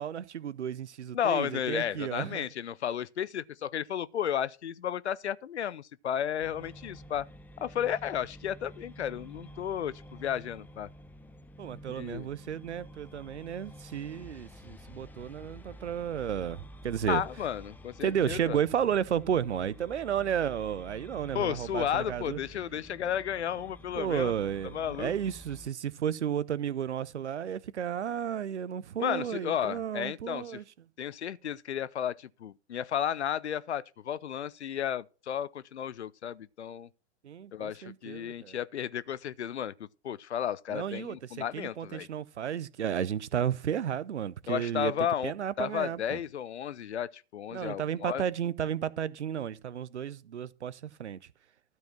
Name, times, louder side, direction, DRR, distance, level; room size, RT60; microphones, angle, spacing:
voice 1, 0.0-2.5 11.6-17.2 18.0-22.4 23.9-30.6 37.2-38.6 40.7-44.9 45.2-46.2 47.5-51.2, right 9 dB, 75° right, 0.7 m, -33 dB
voice 2, 1.1-7.3 7.6-10.9 12.0-12.3 17.1-18.6 21.3-24.3 24.7-25.1 29.0-30.6 31.0-36.9 37.5-42.1 44.5-48.2, left 9 dB, 75° left, 0.6 m, -33 dB
sound 1, 6.4-25.7, equal, 5° left, 0.5 m, -50 dB
12.5 x 4.7 x 5.9 m
figure-of-eight pair, 95°, 34 cm